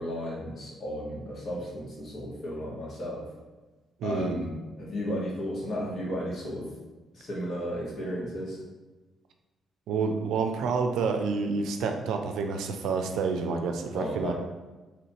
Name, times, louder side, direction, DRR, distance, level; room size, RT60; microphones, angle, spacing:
voice 1, 0.0-3.2 4.0-6.7 7.1-8.6 13.9-14.3, equal, 50° left, -4 dB, 1.5 m, -34 dB
voice 2, 4.0-4.4 9.9-14.3, right 4 dB, 80° right, 5 dB, 0.4 m, -28 dB
3.1 x 2.8 x 4.2 m, 1.2 s
cardioid pair, 90°, 0 cm